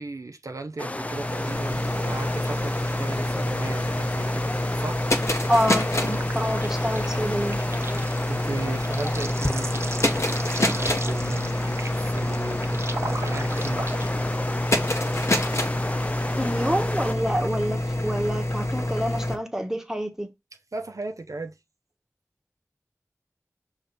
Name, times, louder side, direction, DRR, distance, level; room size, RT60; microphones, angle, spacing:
voice 1, 0.0-4.4 4.8-5.0 8.3-13.9 20.7-21.5, right 3 dB, 75° right, 0.7 m, -36 dB
sound 1, 0.8-17.1, left 1 dB, 25° left, 0.4 m, -33 dB
sound 2, 0.9-19.4, left 1 dB, 55° left, 1.3 m, -27 dB
voice 2, 5.5-7.6 16.4-20.3, equal, 10° right, 1.3 m, -27 dB
sound 3, 5.6-14.1, right 2 dB, 50° right, 1.0 m, -37 dB
5.9 x 3.3 x 5.3 m
wide cardioid pair, 60°, 6 cm